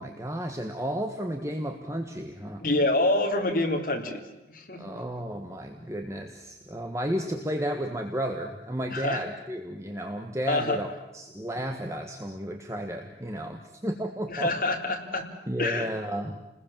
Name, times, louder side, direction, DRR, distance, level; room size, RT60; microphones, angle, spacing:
voice 1, 0.0-2.7 4.7-10.9 11.1-14.5 15.5-16.4, equal, 15° right, 4 dB, 1.6 m, -33 dB
voice 2, 2.6-4.2 4.5-4.8 8.9-9.2 10.5-10.8 14.3-15.3 15.6-15.9, left 2 dB, 50° left, 1 dB, 3.8 m, -26 dB
30.0 x 20.5 x 7.4 m, 1.1 s
head